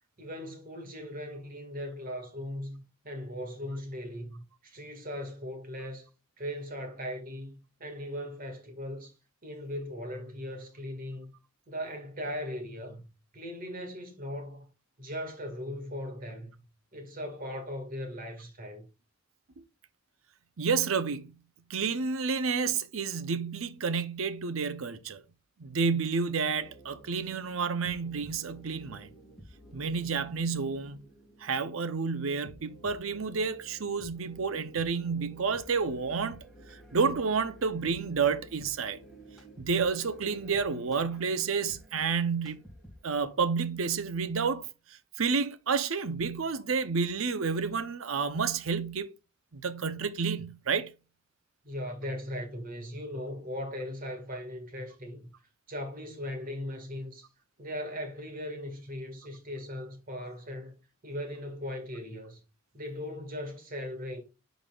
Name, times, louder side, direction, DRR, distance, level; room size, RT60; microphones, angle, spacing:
voice 1, 0.2-6.1 6.4-9.1 9.4-11.3 11.7-13.1 13.3-14.7 15.0-16.6 16.9-18.9 51.6-55.3 55.7-57.3 57.6-60.7 61.0-62.4 62.7-64.2, left 1 dB, 40° right, 1.7 m, -38 dB
voice 2, 20.6-21.3 21.7-25.2 25.6-29.1 29.7-31.0 31.4-36.4 36.7-39.0 39.6-42.6 43.0-44.7 45.2-49.1 49.5-50.9, right 5 dB, 75° right, 0.7 m, -30 dB
sound 1, 26.6-43.3, right 1 dB, ahead, 1.9 m, -53 dB
9.9 x 4.1 x 2.3 m
head